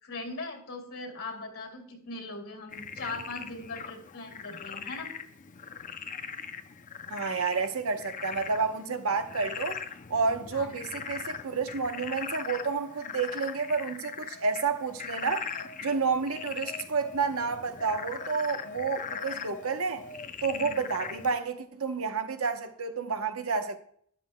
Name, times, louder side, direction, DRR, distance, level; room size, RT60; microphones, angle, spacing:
voice 1, 0.0-5.1 10.5-10.7, left 3 dB, 70° left, 3.0 m, -40 dB
Frog, 2.7-21.4, left 6 dB, 35° left, 0.6 m, -40 dB
voice 2, 7.1-9.8 10.1-15.5 15.8-20.0 20.4-23.8, right 5 dB, 75° right, 1.0 m, -30 dB
13.0 x 11.5 x 2.3 m
head